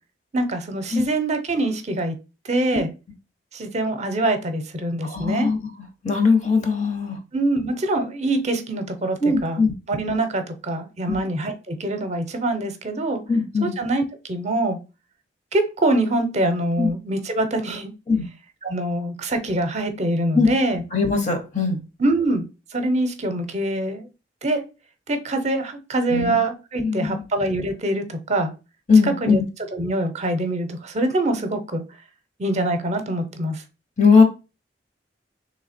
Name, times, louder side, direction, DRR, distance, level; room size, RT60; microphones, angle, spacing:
voice 1, 0.3-2.1 2.5-2.9 3.5-5.5 7.3-9.6 9.9-13.2 13.6-14.8 15.5-17.9 18.6-20.8 22.0-22.5 22.7-24.1 24.4-24.6 25.1-28.5 29.0-29.4 29.7-31.8 32.4-33.6, right 1 dB, 40° right, 0.6 m, -24 dB
voice 2, 5.0-5.6 6.0-7.2 9.2-9.7 11.1-11.2 13.3-13.8 16.8-16.9 18.1-18.3 20.3-20.5 20.9-21.8 26.1-26.4 26.8-27.2 28.9-29.4 34.0-34.2, left 4 dB, 45° left, 0.9 m, -19 dB
3.3 x 3.1 x 4.2 m
head